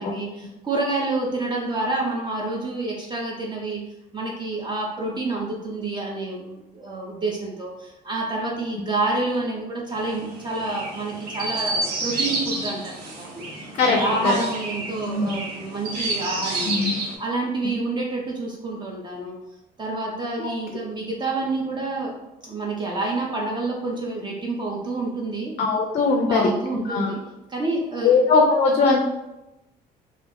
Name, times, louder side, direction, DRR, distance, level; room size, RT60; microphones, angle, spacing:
voice 1, 0.0-3.8 4.1-19.4 19.8-22.2 22.4-25.5 26.3-27.2 27.5-28.2, right 2 dB, 25° right, -1 dB, 0.5 m, -28 dB
Chirp tweet, 9.9-17.2, right 2 dB, 65° right, 0.7 m, -30 dB
voice 2, 13.7-14.3 15.1-15.3 16.7-16.9 25.6-26.5 26.9-27.1 28.0-29.0, left 4 dB, 45° left, 1 dB, 0.4 m, -20 dB
2.3 x 2.0 x 3.4 m, 0.95 s
cardioid pair, 110°, 17 cm